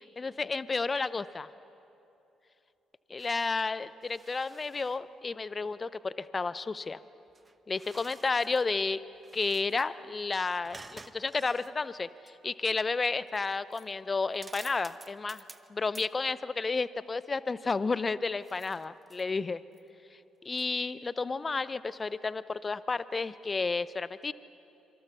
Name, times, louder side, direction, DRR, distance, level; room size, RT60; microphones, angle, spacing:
voice 1, 0.2-1.5 3.1-7.0 7.7-9.0 9.3-15.4 15.7-19.6 20.4-24.3, left 4 dB, 35° left, 17 dB, 0.7 m, -32 dB
sound 1, 3.2-3.7 4.0-5.0 7.3-8.7 9.1-9.9 10.6-11.7 12.3-12.4 13.3-13.4 13.7-13.9 14.3-15.7 15.9-16.1 18.4-19.3 19.8-19.9 20.5-20.7, right 3 dB, 30° right, 1.0 m, -52 dB
27.0 x 26.0 x 6.1 m, 2.9 s
hypercardioid pair, 45°, 0 cm